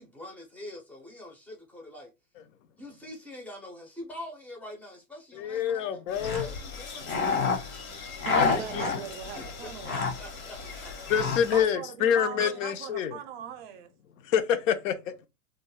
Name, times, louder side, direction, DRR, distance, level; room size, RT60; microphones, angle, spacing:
voice 1, 0.0-2.1 2.8-7.2 9.4-10.9, left 1 dB, 5° left, 0.4 m, -45 dB
voice 2, 5.4-6.5 8.3-8.5 8.7-8.8 11.1-13.2 14.2-15.3, left 8 dB, 65° left, 0.5 m, -27 dB
sound 1, 6.1-11.7, left 5 dB, 80° left, 1.1 m, -30 dB
voice 3, 8.2-10.1 11.5-13.9, right 9 dB, 45° right, 0.5 m, -39 dB
2.3 x 2.0 x 3.1 m
hypercardioid pair, 120°, 42 cm